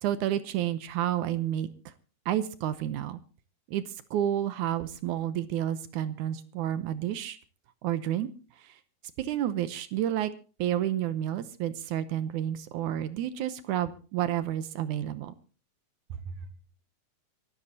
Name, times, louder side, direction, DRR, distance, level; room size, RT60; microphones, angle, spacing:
voice 1, 0.0-1.9 2.3-3.2 3.7-7.4 7.8-8.3 8.6-8.8 9.2-10.3 10.6-15.3 16.1-16.2, right 11 dB, 75° right, 13 dB, 2.1 m, -30 dB
24.5 x 13.0 x 2.8 m, 0.36 s
omnidirectional pair, 3.9 m